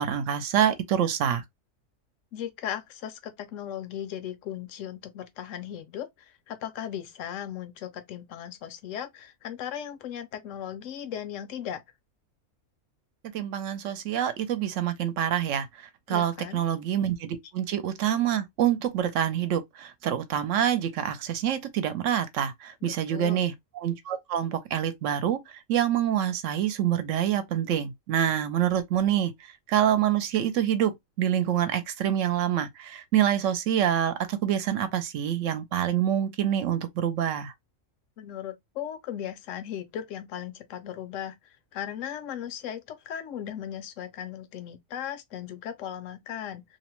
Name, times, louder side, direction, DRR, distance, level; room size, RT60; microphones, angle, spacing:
voice 1, 0.0-1.4 13.3-15.7 16.1-25.4 25.7-29.3 29.7-37.5, right 10 dB, 75° right, 0.9 m, -26 dB
voice 2, 2.3-11.8 16.1-16.6 22.8-23.4 38.2-46.8, left 10 dB, 75° left, 0.9 m, -37 dB
2.7 x 2.0 x 2.9 m
omnidirectional pair, 1.3 m